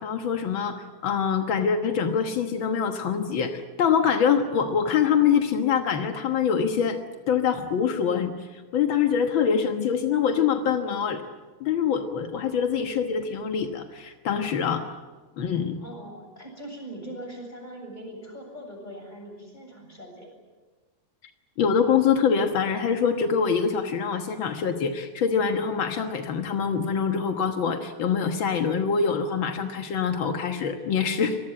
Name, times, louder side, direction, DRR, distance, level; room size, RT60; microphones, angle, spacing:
voice 1, 0.0-7.0 7.3-11.2 11.6-15.0 15.4-15.8 21.6-31.4, left 7 dB, 70° left, 6 dB, 1.1 m, -24 dB
voice 2, 15.8-20.3, right 1 dB, 10° left, 2 dB, 7.4 m, -41 dB
26.0 x 19.5 x 8.8 m, 1.3 s
omnidirectional pair, 4.2 m